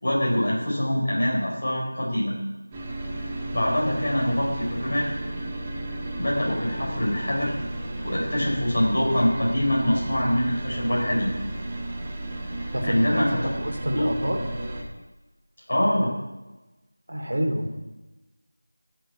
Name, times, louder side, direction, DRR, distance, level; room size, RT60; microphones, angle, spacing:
voice 1, 0.0-2.3 3.5-5.1 6.2-7.6 8.0-11.3 12.9-13.5 13.9-14.1 15.7-16.1, equal, 50° left, -4 dB, 4.9 m, -24 dB
sound 1, 2.7-14.8, right 1 dB, 15° right, 1.6 m, -33 dB
voice 2, 12.7-14.4 17.1-17.8, equal, 85° right, 3 dB, 3.1 m, -27 dB
13.0 x 7.4 x 8.4 m, 1.1 s
figure-of-eight pair, 175°, 0 cm